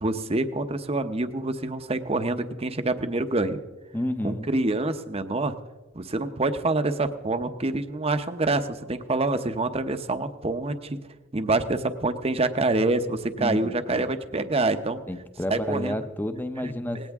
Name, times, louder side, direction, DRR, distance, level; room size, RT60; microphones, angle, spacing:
voice 1, 0.0-3.6 4.2-5.6 5.9-11.0 11.3-15.0 15.5-15.9 16.6-17.1, right 2 dB, 30° right, 9 dB, 0.8 m, -26 dB
voice 2, 3.9-4.5 13.4-14.1 15.1-17.1, left 1 dB, 10° left, 9 dB, 0.8 m, -31 dB
19.0 x 17.0 x 3.6 m, 1.2 s
head